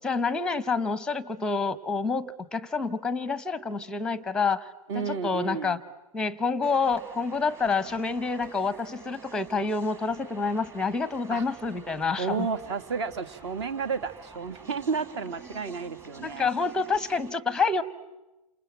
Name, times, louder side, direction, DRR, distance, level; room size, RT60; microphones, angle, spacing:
voice 1, 0.0-4.7 4.9-5.8 6.1-12.5 16.2-17.8, left 4 dB, 5° left, 18 dB, 0.9 m, -28 dB
voice 2, 4.9-5.8 11.3-11.4 12.2-16.5, right 5 dB, 45° right, 12 dB, 1.9 m, -31 dB
sound 1, 6.6-17.3, right 3 dB, 15° right, 1.8 m, -49 dB
29.0 x 27.0 x 7.5 m, 1.0 s
figure-of-eight pair, 120°, 19 cm